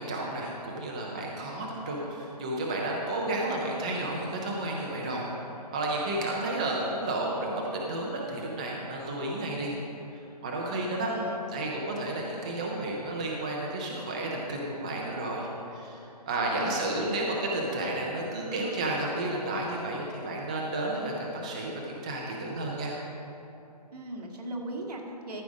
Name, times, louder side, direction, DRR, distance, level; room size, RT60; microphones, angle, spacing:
voice 1, 0.0-9.7 10.1-11.1 11.5-22.9, right 2 dB, 10° right, -2 dB, 0.3 m, -32 dB
voice 2, 10.7-11.4 16.4-16.8 23.9-25.4, right 1 dB, 70° right, 0 dB, 1.8 m, -38 dB
13.0 x 4.8 x 6.1 m, 2.9 s
hypercardioid pair, 160°, 21 cm